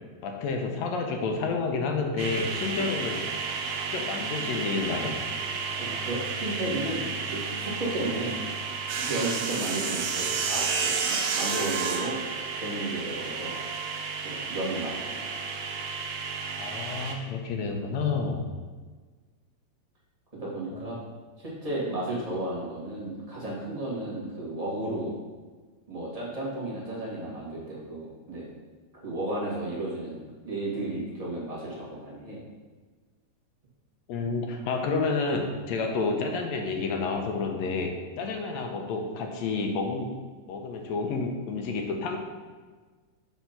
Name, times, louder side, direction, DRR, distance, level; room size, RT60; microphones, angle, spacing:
voice 1, 0.2-3.3 3.9-5.2 16.6-18.5 20.7-21.0 34.1-40.1 40.5-42.2, left 4 dB, 75° left, 3 dB, 1.9 m, -30 dB
sound 1, 2.2-17.1, right 5 dB, 85° right, 2.2 m, -31 dB
voice 2, 5.8-8.4 9.0-12.1 12.5-13.5 14.2-15.2 20.4-21.0 21.4-25.1 25.9-28.5 29.0-32.4, right 1 dB, 20° right, -7 dB, 1.1 m, -33 dB
7.1 x 3.5 x 5.7 m, 1.4 s
omnidirectional pair, 3.3 m